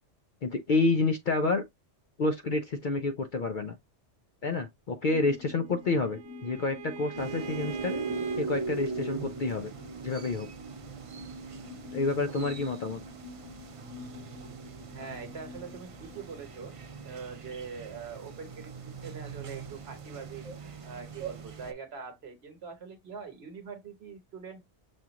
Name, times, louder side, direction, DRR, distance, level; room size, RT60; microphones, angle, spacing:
voice 1, 0.4-1.6 2.2-3.8 4.4-8.1 8.4-9.7 10.0-10.5 11.9-13.0, left 3 dB, 55° left, 0.6 m, -29 dB
sound 1, 5.1-18.1 18.5-18.6, left 6 dB, 85° left, 1.5 m, -49 dB
Bowed string instrument, 5.3-8.4, right 8 dB, 80° right, 1.1 m, -43 dB
sound 2, 7.2-21.7, right 4 dB, 45° right, 0.4 m, -40 dB
voice 2, 14.9-16.7 17.0-18.7 19.0-20.5 20.8-24.7, right 5 dB, 60° right, 1.2 m, -43 dB
6.2 x 2.4 x 2.9 m
omnidirectional pair, 1.2 m